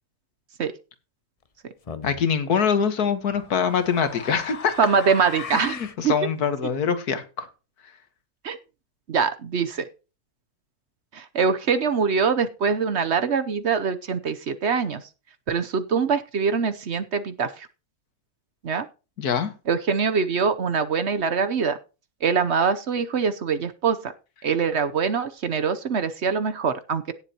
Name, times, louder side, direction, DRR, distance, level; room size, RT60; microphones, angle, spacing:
sound 1, 1.9-2.2 3.3-6.0, left 5 dB, 40° left, 0.6 m, -37 dB
voice 1, 2.0-4.7 5.5-7.5 19.2-19.5, left 6 dB, 90° left, 10 dB, 1.9 m, -24 dB
voice 2, 4.8-5.8 6.0-6.1 8.4-8.6 9.1-9.9 11.1-15.0 15.5-17.7 18.6-18.8 19.7-21.8 22.2-24.1 24.4-27.1, right 6 dB, 55° right, 11 dB, 0.9 m, -23 dB
17.0 x 7.4 x 2.9 m, 0.31 s
omnidirectional pair, 1.6 m